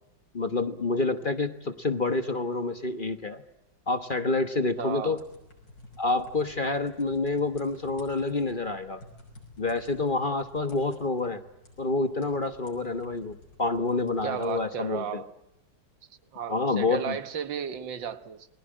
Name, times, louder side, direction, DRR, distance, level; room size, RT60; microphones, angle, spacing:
voice 1, 0.3-3.4 3.9-5.2 6.0-9.0 9.6-11.4 11.8-15.2 16.5-17.2, left 3 dB, 30° left, 1.2 m, -28 dB
sound 1, 4.6-14.6, left 2 dB, 80° left, 6.7 m, -52 dB
voice 2, 4.8-5.2 14.2-15.3 16.3-18.5, right 8 dB, 90° right, 2.1 m, -34 dB
29.5 x 21.5 x 8.9 m
omnidirectional pair, 2.0 m